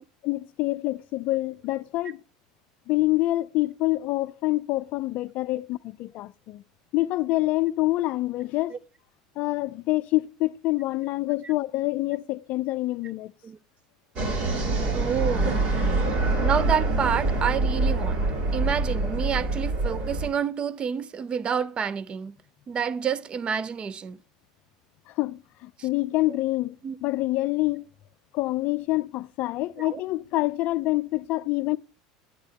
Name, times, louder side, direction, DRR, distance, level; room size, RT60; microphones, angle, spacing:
voice 1, 0.2-2.2 2.9-6.6 6.9-8.7 9.4-13.3 25.2-26.8 27.0-27.8 28.3-31.8, left 19 dB, 55° left, 0.4 m, -26 dB
sound 1, 14.2-20.3, right 2 dB, 50° right, 3.3 m, -25 dB
voice 2, 14.9-15.6 16.4-18.2 18.5-22.4 22.7-24.2 25.8-25.9 26.3-26.4 26.8-27.0 29.8-30.0, right 7 dB, 30° right, 0.5 m, -29 dB
8.6 x 8.2 x 2.9 m
hypercardioid pair, 95°, 3 cm